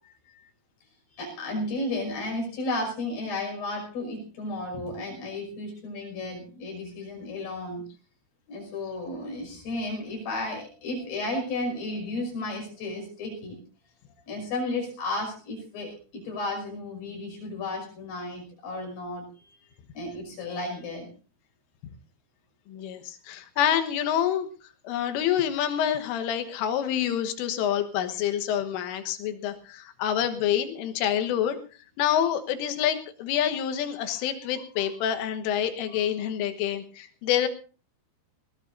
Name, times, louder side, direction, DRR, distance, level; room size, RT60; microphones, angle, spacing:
voice 1, 1.2-7.8 8.5-13.6 14.3-19.6 19.9-21.1, left 2 dB, 55° left, 2 dB, 7.6 m, -33 dB
voice 2, 22.7-24.5 24.9-31.6 32.0-37.5, left 10 dB, 90° left, 7 dB, 3.8 m, -27 dB
21.0 x 19.0 x 2.6 m, 0.37 s
omnidirectional pair, 5.6 m